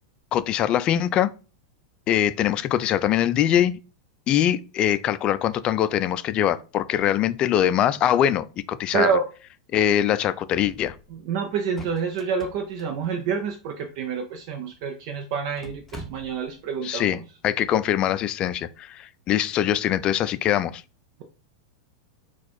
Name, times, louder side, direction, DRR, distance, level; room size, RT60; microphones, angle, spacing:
voice 1, 0.3-1.3 2.1-3.8 4.3-9.1 9.7-10.9 16.8-20.8, left 11 dB, 35° left, 0.3 m, -23 dB
voice 2, 8.9-9.2 11.1-17.2, right 6 dB, 55° right, 0.7 m, -28 dB
sound 1, 10.6-11.2 11.5-13.6 14.5-14.6 14.8-14.9 15.4-16.6, right 1 dB, 10° left, 0.9 m, -44 dB
4.0 x 2.4 x 4.3 m
hypercardioid pair, 100°, 3 cm